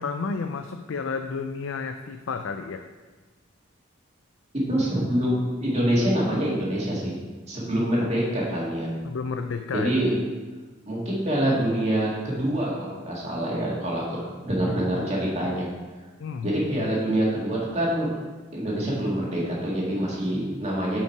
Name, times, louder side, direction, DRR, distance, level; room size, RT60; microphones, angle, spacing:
voice 1, 0.0-2.8 9.0-9.9 16.2-16.5, left 5 dB, 80° left, 7 dB, 0.4 m, -31 dB
voice 2, 4.7-7.1 7.5-8.9 9.7-10.1 10.9-15.7 16.4-18.1 18.5-21.0, right 1 dB, 35° right, -5 dB, 2.1 m, -25 dB
7.2 x 5.6 x 4.7 m, 1.3 s
head